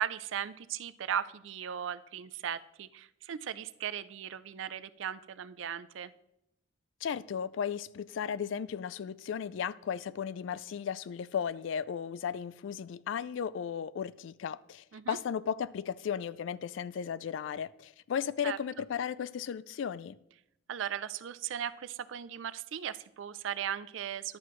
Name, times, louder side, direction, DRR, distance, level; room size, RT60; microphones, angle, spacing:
voice 1, 0.0-6.1 14.9-15.2 18.4-18.6 20.7-24.4, right 9 dB, 75° right, 0.4 m, -37 dB
voice 2, 7.0-20.2, left 7 dB, 75° left, 0.3 m, -35 dB
11.0 x 7.5 x 3.1 m
head